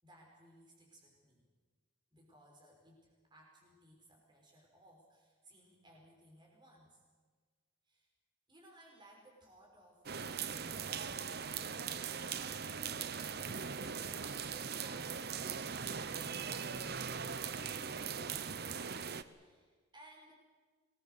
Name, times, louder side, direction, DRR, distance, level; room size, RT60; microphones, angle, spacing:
voice 1, 0.0-1.4 2.1-7.0 7.8-8.1 8.5-11.8 19.3-20.3, right 1 dB, 20° right, 0 dB, 5.8 m, -62 dB
sound 1, 10.1-19.2, right 6 dB, 50° right, 0.8 m, -40 dB
26.0 x 20.0 x 6.8 m, 1.5 s
head